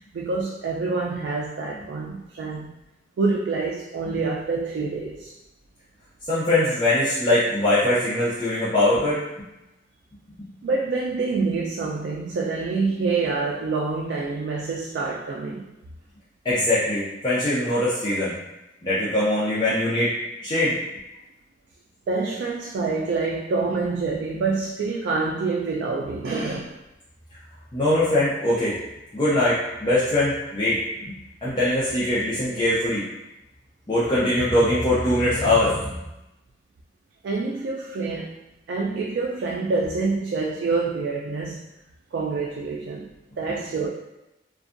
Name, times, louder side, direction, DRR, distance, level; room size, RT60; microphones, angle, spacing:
voice 1, 0.0-2.7 3.2-5.3 10.6-15.6 22.1-26.8 37.2-38.3 38.7-41.6 42.1-43.1 43.4-43.9, right 4 dB, 70° right, -2 dB, 0.3 m, -26 dB
voice 2, 6.3-9.2 16.4-18.3 18.8-20.1 20.4-20.8 27.7-28.8 29.1-30.8 31.4-33.0 33.9-35.9, left 1 dB, 25° left, -10 dB, 0.5 m, -22 dB
2.6 x 2.2 x 2.5 m, 0.95 s
head